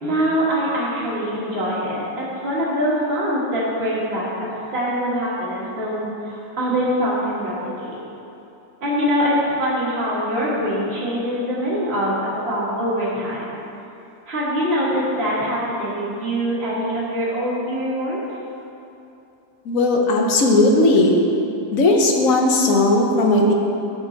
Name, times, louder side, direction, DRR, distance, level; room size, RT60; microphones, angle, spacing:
voice 1, 0.0-8.0 8.8-13.5 14.3-18.2, equal, 40° right, -7 dB, 1.9 m, -23 dB
voice 2, 19.7-21.2 21.7-23.5, left 2 dB, 60° left, 1 dB, 1.1 m, -16 dB
13.0 x 4.4 x 3.9 m, 2.8 s
omnidirectional pair, 1.8 m